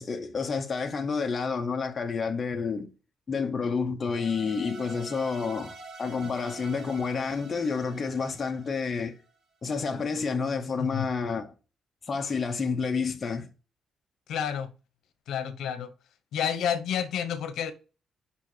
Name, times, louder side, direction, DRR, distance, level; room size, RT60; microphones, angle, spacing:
voice 1, 0.0-2.9 3.3-9.2 9.6-11.5 12.1-13.5, left 5 dB, 25° left, 0.6 m, -29 dB
sound 1, 4.0-9.2, right 3 dB, 80° right, 1.6 m, -46 dB
voice 2, 14.3-14.7 15.3-15.9 16.3-17.7, left 8 dB, 75° left, 0.8 m, -30 dB
5.2 x 4.2 x 4.8 m
cardioid pair, 175°, 0 cm